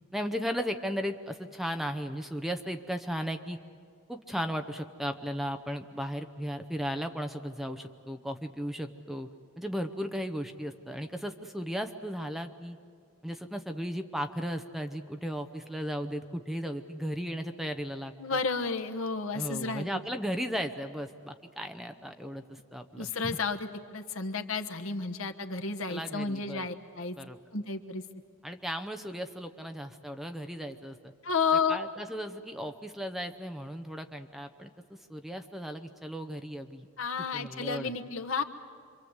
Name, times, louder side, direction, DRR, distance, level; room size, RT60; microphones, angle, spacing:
voice 1, 0.1-3.6 4.1-9.3 9.6-12.8 13.2-18.4 19.3-23.4 25.9-26.7 27.2-27.4 28.4-31.1 31.7-36.9 37.3-37.9, equal, ahead, 6 dB, 0.8 m, -36 dB
voice 2, 18.2-19.9 22.9-27.2 27.5-28.0 31.2-31.8 37.0-38.4, left 4 dB, 75° left, 6 dB, 1.3 m, -31 dB
27.5 x 24.0 x 8.1 m, 2.3 s
head